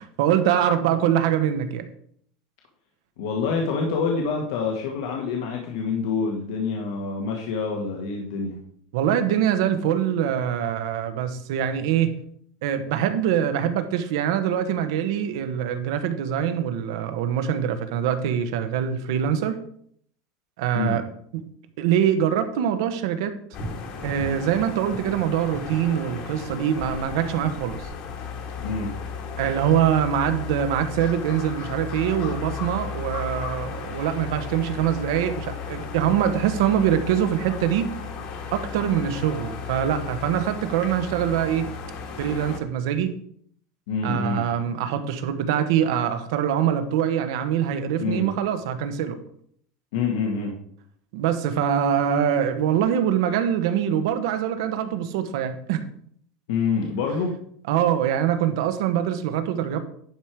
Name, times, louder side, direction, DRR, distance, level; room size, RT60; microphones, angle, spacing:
voice 1, 0.0-1.9 8.9-12.1 12.6-19.6 20.6-21.0 21.3-21.4 21.8-23.3 24.0-27.9 29.4-37.9 38.5-41.7 42.2-43.1 44.0-49.2 51.1-55.8 57.7-59.8, right 9 dB, 75° right, 9 dB, 1.1 m, -24 dB
voice 2, 3.2-8.6 20.7-21.0 28.6-28.9 43.9-44.5 48.0-48.3 49.9-50.5 56.5-57.4, left 5 dB, 85° left, 0 dB, 1.7 m, -26 dB
sound 1, 23.5-42.6, left 5 dB, 50° left, 1.6 m, -34 dB
11.0 x 5.1 x 4.6 m, 0.64 s
supercardioid pair, 160°, 2 cm